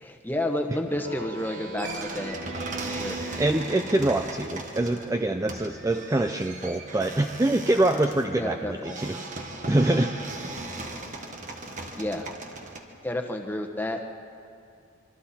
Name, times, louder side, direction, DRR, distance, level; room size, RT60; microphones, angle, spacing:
voice 1, 0.0-2.4 2.8-3.2 8.4-9.0 12.0-12.3 13.0-14.0, left 1 dB, 10° left, 4 dB, 1.1 m, -30 dB
Speech synthesizer, 0.8-4.3, right 2 dB, 60° right, 2.8 m, -39 dB
sound 1, 1.8-12.8, right 2 dB, 35° right, 1.5 m, -38 dB
voice 2, 3.4-9.2 9.7-10.1, right 1 dB, 15° right, 5 dB, 0.5 m, -25 dB
25.5 x 23.5 x 4.3 m, 2.4 s
head